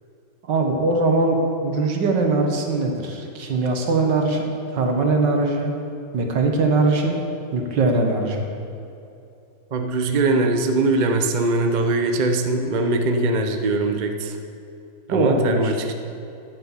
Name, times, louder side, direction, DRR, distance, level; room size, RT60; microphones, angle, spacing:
voice 1, 0.4-1.4 1.6-5.7 6.1-7.2 7.5-8.5 15.1-15.7, right 3 dB, 65° right, 2 dB, 2.0 m, -21 dB
voice 2, 9.7-14.4 15.1-15.9, right 2 dB, 45° right, 5 dB, 0.6 m, -21 dB
10.0 x 9.6 x 7.3 m, 2.7 s
omnidirectional pair, 2.1 m